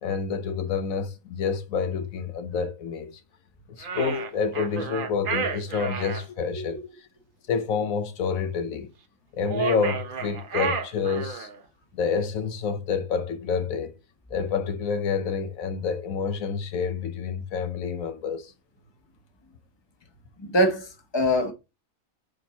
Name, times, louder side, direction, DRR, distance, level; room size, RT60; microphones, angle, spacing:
voice 1, 0.0-3.2 3.8-6.9 7.5-8.9 9.3-11.5 12.0-13.9 14.3-18.5, left 5 dB, 75° left, 1.2 m, -28 dB
sound 1, 3.8-6.2 9.4-11.6, right 6 dB, 45° right, 0.8 m, -31 dB
voice 2, 20.4-21.5, equal, 20° left, 1.1 m, -24 dB
6.3 x 4.4 x 4.0 m
omnidirectional pair, 1.5 m